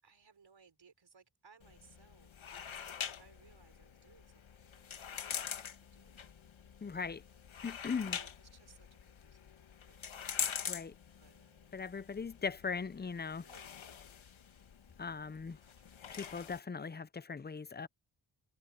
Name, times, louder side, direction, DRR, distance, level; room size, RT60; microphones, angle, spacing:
voice 1, 0.0-2.7 3.2-6.3 8.1-9.6 9.9-10.9 11.2-11.8 13.4-14.0 15.4-16.0, right 5 dB, 65° right, 5.9 m, -65 dB
sound 1, 1.6-16.6, left 8 dB, 75° left, 1.5 m, -45 dB
voice 2, 6.8-7.2 7.6-8.2 10.7-10.9 11.7-13.4 15.0-15.6 16.1-17.9, left 5 dB, 20° left, 0.5 m, -39 dB
wide cardioid pair, 90°, 47 cm